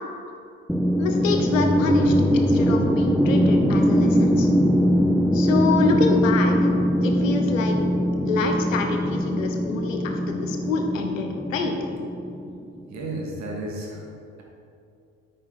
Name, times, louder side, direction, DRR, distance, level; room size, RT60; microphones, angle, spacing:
sound 1, 0.7-12.8, equal, ahead, 0.5 m, -21 dB
voice 1, 1.0-4.5 5.3-6.7 7.0-7.8 8.3-11.9, left 4 dB, 75° left, 4 dB, 1.1 m, -26 dB
voice 2, 12.9-14.1, right 1 dB, 45° right, -2 dB, 2.4 m, -32 dB
9.3 x 8.8 x 4.4 m, 2.6 s
figure-of-eight pair, 60°, 39 cm